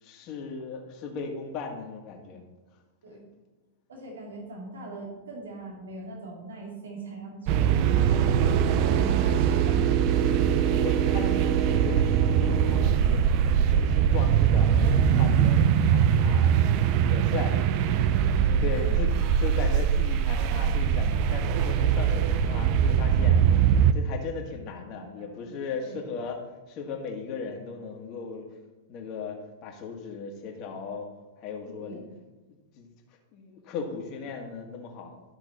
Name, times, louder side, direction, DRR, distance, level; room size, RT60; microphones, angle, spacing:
voice 1, 0.0-2.5 10.2-13.2 13.7-16.7 17.1-19.1 19.4-23.4 23.9-26.4 26.7-28.5 28.9-31.1 31.4-32.0 32.8-32.9 33.3-35.2, left 5 dB, 40° left, 2 dB, 1.9 m, -37 dB
voice 2, 3.9-9.9 18.3-18.9 22.5-22.7 24.8-26.0 31.6-32.0, right 2 dB, 75° right, 0 dB, 2.3 m, -41 dB
sound 1, 7.5-23.9, right 8 dB, 45° right, 0.6 m, -22 dB
12.5 x 5.9 x 4.2 m, 1.2 s
figure-of-eight pair, 100°, 0 cm